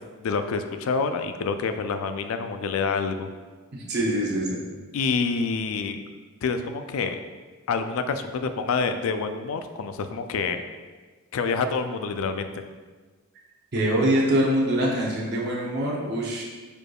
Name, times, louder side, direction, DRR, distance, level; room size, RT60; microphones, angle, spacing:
voice 1, 0.2-3.3 4.9-6.0 6.4-7.2 7.7-10.6 11.3-12.5, left 4 dB, 65° left, 8 dB, 0.3 m, -27 dB
voice 2, 3.7-4.6 13.7-16.4, right 1 dB, 45° right, -4 dB, 0.7 m, -24 dB
4.9 x 4.6 x 2.3 m, 1.4 s
head